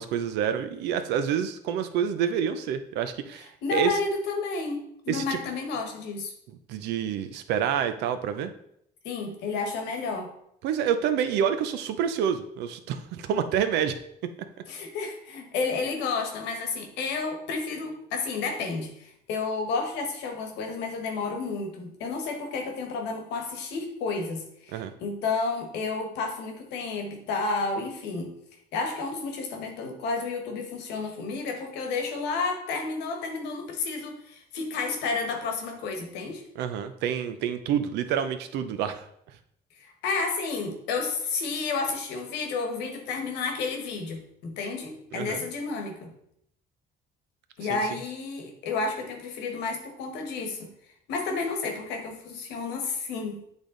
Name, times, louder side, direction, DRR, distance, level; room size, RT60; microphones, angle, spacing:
voice 1, 0.0-3.9 5.1-5.4 6.7-8.5 10.6-14.0 24.7-24.9 36.6-39.1 45.1-45.4 47.7-47.8, right 8 dB, 85° right, 10 dB, 0.6 m, -28 dB
voice 2, 3.6-6.3 9.0-10.3 14.7-28.3 28.7-36.4 39.8-46.1 47.6-50.7 51.1-53.4, left 4 dB, 85° left, 4 dB, 1.3 m, -31 dB
8.2 x 3.5 x 3.8 m, 0.72 s
cardioid pair, 110°, 17 cm